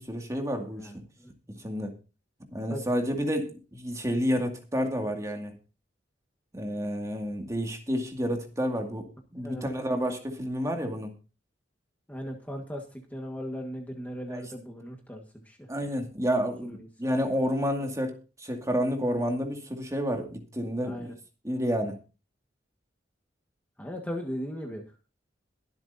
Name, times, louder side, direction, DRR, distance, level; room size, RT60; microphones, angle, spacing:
voice 1, 0.0-0.9 1.5-1.9 2.5-5.6 6.5-11.1 14.3-14.4 15.7-21.1 21.4-22.0, equal, 20° right, 2.2 m, -30 dB
voice 2, 0.7-1.3 2.7-2.8 9.3-9.9 12.1-15.7 16.6-16.9 20.8-21.1 23.8-24.8, equal, 10° left, 1.6 m, -38 dB
22.5 x 7.9 x 2.7 m
head